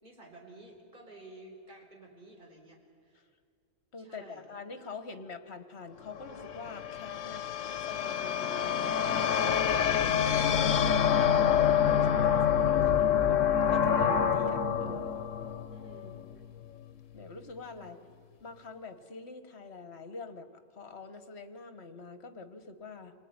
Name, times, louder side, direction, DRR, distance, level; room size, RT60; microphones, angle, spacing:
voice 1, 0.0-3.2 4.0-4.5 12.7-13.2 15.7-16.2 17.8-18.1, right 2 dB, 40° right, 0 dB, 4.3 m, -53 dB
voice 2, 3.9-9.8 10.2-12.8 13.2-13.4 13.7-15.2 17.1-18.0 18.4-23.1, left 4 dB, 55° left, 9 dB, 1.7 m, -45 dB
sound 1, 6.1-16.4, left 8 dB, 70° left, 1.2 m, -27 dB
28.0 x 20.0 x 9.7 m, 2.2 s
omnidirectional pair, 1.4 m